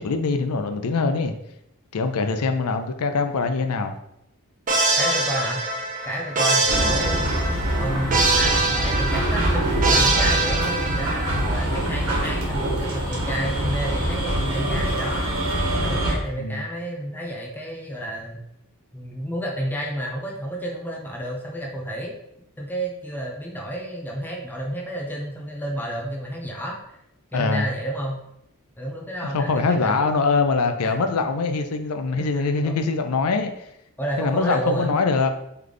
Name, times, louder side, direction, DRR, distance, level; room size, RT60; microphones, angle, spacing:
voice 1, 0.0-1.3 1.9-4.0 6.8-7.0 16.3-16.6 27.3-27.7 29.3-33.7 34.2-35.3, left 4 dB, 85° left, 7 dB, 0.5 m, -23 dB
voice 2, 2.2-2.5 5.0-5.6 6.0-7.4 7.8-15.3 15.8-18.4 18.9-22.1 22.6-26.8 27.3-28.2 28.8-30.0 30.8-31.0 32.1-32.8 34.0-34.9, equal, 10° left, -1 dB, 0.6 m, -30 dB
sound 1, 4.7-11.5, right 3 dB, 40° right, 0.6 m, -23 dB
sound 2, 6.7-16.1, right 1 dB, 70° right, 1.3 m, -24 dB
3.3 x 3.2 x 3.8 m, 0.81 s
head